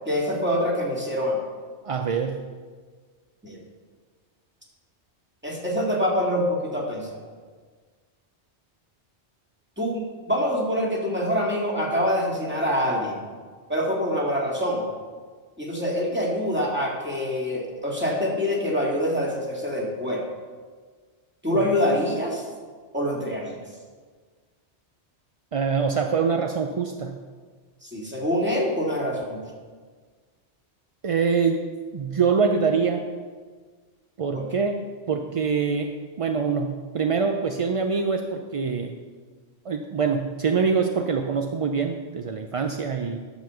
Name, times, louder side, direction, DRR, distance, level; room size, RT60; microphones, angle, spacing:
voice 1, 0.0-1.4 3.4-3.6 5.4-7.2 9.8-13.2 13.7-14.8 15.6-20.2 21.4-22.5 22.9-23.6 27.8-29.4 34.3-34.5, equal, 10° right, -3 dB, 2.0 m, -25 dB
voice 2, 1.8-2.4 21.5-21.6 25.5-27.2 31.0-31.6 31.9-33.0 34.2-34.8 35.1-35.9 36.2-38.9 39.6-43.2, right 5 dB, 45° right, 4 dB, 0.4 m, -24 dB
11.5 x 5.1 x 6.9 m, 1.5 s
omnidirectional pair, 1.2 m